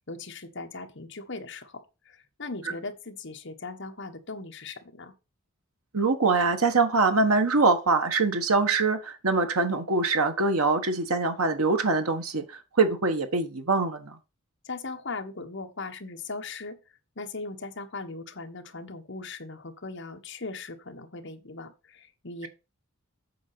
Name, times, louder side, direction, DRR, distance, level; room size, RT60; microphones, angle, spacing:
voice 1, 0.0-5.1 14.6-16.8 17.2-22.5, left 3 dB, 55° left, 1.3 m, -39 dB
voice 2, 5.9-14.2, right 3 dB, 90° right, 1.4 m, -24 dB
8.5 x 4.2 x 6.8 m
head